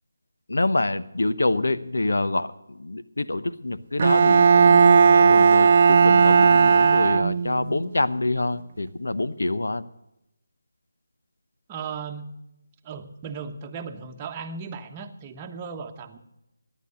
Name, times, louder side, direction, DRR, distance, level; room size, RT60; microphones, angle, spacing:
voice 1, 0.5-9.8, left 2 dB, 75° left, 13 dB, 0.9 m, -26 dB
Bowed string instrument, 4.0-7.7, right 5 dB, 40° right, 0.4 m, -16 dB
voice 2, 11.7-12.3 12.8-16.2, right 5 dB, 20° right, 4 dB, 1.1 m, -36 dB
15.0 x 10.5 x 6.4 m, 0.90 s
figure-of-eight pair, 160°, 0 cm